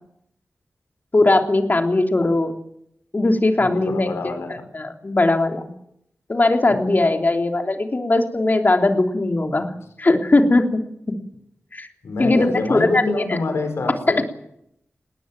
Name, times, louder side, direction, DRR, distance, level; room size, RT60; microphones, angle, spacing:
voice 1, 1.1-2.5 3.1-4.1 4.7-5.7 6.3-9.7 10.0-10.6 11.7-11.9 12.2-13.4, left 2 dB, 40° left, 4 dB, 3.4 m, -19 dB
voice 2, 3.6-4.7 6.7-7.0 9.6-9.7 12.0-14.2, left 3 dB, 90° left, 7 dB, 5.3 m, -27 dB
20.0 x 18.5 x 9.1 m, 0.76 s
cardioid pair, 55°, 5 cm